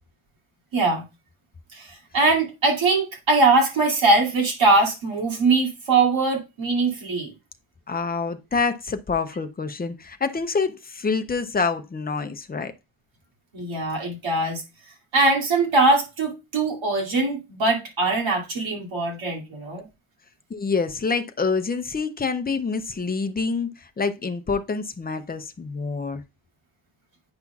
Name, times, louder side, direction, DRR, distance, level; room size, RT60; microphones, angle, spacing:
voice 1, 0.7-1.1 1.7-7.3 13.5-14.6 15.1-19.8, right 3 dB, 75° right, 2.6 m, -21 dB
voice 2, 7.9-12.7 20.5-26.2, left 4 dB, 20° left, 0.5 m, -27 dB
9.6 x 5.5 x 2.3 m
wide cardioid pair, 175°, 47 cm